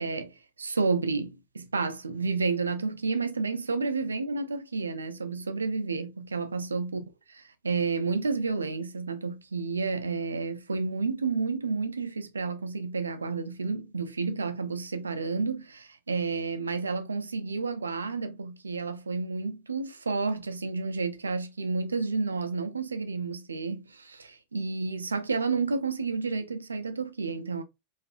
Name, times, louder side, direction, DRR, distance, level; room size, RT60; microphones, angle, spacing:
voice 1, 0.0-7.0 7.6-27.6, right 4 dB, 75° right, 0.3 m, -30 dB
2.6 x 2.4 x 2.3 m
figure-of-eight pair, 90°, 0 cm